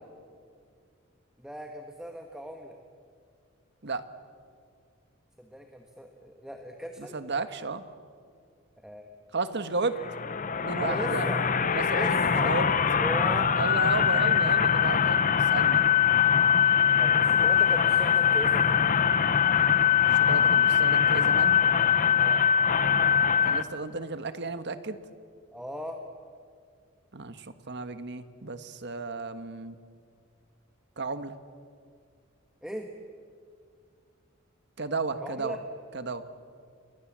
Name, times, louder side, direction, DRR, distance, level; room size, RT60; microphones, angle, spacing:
voice 1, 1.4-2.8 5.4-7.2 8.8-9.1 10.8-11.4 11.9-12.5 13.0-13.5 17.0-18.8 22.2-22.5 25.5-26.0 32.6-32.9 35.2-35.6, equal, 5° right, 3 dB, 1.6 m, -38 dB
voice 2, 7.0-7.8 9.3-10.0 10.6-11.3 11.7-12.7 13.6-15.9 20.1-21.6 23.4-25.0 27.1-29.8 31.0-31.3 34.8-35.6 35.9-36.3, right 3 dB, 60° right, 10 dB, 1.5 m, -33 dB
sound 1, 10.0-23.6, left 8 dB, 40° left, 0.9 m, -22 dB
30.0 x 23.5 x 7.6 m, 2.2 s
head